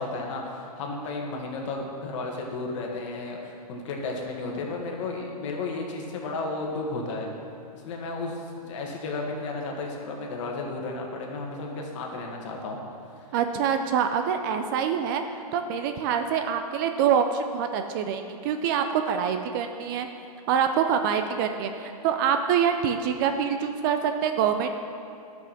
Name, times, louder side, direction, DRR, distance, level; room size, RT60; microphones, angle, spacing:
voice 1, 0.0-7.3 7.7-12.8, left 3 dB, 50° left, 0 dB, 1.8 m, -33 dB
voice 2, 13.3-15.2 15.5-20.1 20.5-24.7, right 7 dB, 30° right, 7 dB, 0.5 m, -25 dB
10.5 x 6.1 x 6.0 m, 2.5 s
hypercardioid pair, 145°, 20 cm